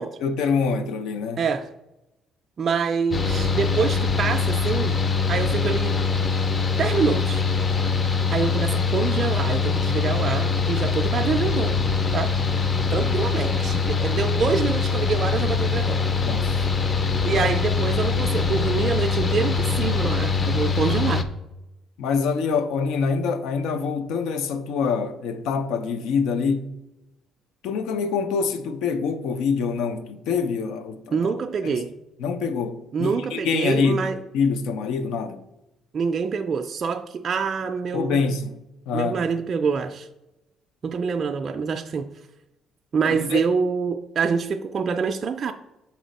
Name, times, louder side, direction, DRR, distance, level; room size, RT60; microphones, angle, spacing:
voice 1, 0.2-1.4 16.2-16.6 17.3-17.5 22.0-26.7 27.6-31.3 31.6-31.8 32.2-35.4 37.9-38.6 38.9-39.2 43.1-43.4, left 5 dB, 85° left, 0.5 m, -25 dB
voice 2, 1.4-1.7 2.6-5.0 5.3-6.0 6.7-7.4 8.3-11.8 12.1-12.4 12.9-16.0 17.2-21.3 31.1-31.9 32.9-34.2 35.9-38.2 38.9-40.1 40.8-42.1 42.9-45.5, right 5 dB, 40° right, 0.3 m, -26 dB
Mechanical fan, 3.1-21.2, left 5 dB, 25° left, 0.4 m, -23 dB
6.4 x 4.2 x 4.0 m
cardioid pair, 130°, 0 cm